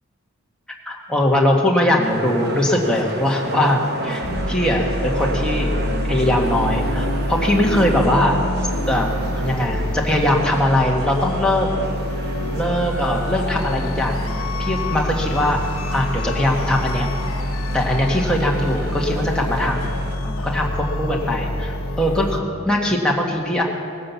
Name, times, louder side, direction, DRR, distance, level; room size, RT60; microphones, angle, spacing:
voice 1, 0.8-5.7 6.1-8.4 8.9-9.1 9.3-11.7 12.5-15.6 15.9-17.1 17.7-19.8 20.2-23.6, left 1 dB, 5° left, -2 dB, 1.6 m, -21 dB
sound 1, 2.0-20.2, right 2 dB, 45° right, 1.0 m, -32 dB
sound 2, 4.2-22.4, left 1 dB, 75° left, 0.9 m, -26 dB
19.0 x 10.0 x 7.2 m, 2.6 s
head